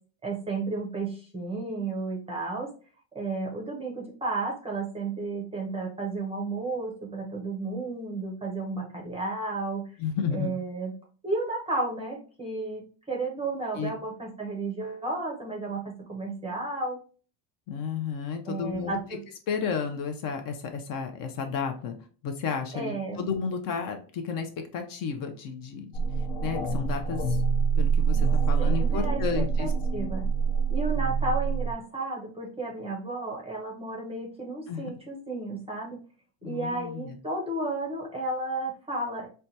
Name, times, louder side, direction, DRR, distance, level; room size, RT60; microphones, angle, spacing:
voice 1, 0.2-2.7 3.1-9.9 10.3-10.9 11.2-17.0 18.4-19.2 22.7-23.3 28.6-30.2 30.7-36.0 36.4-39.3, right 2 dB, 15° right, -1 dB, 0.5 m, -33 dB
voice 2, 10.0-10.5 13.8-13.9 17.7-19.0 19.5-22.0 22.2-26.0 26.4-27.4 27.8-29.7 34.7-34.9 36.4-37.2, left 6 dB, 45° left, 5 dB, 0.5 m, -32 dB
sound 1, 25.9-31.7, right 5 dB, 70° left, 0.8 m, -25 dB
4.3 x 2.2 x 2.6 m, 0.39 s
cardioid pair, 150°, 48 cm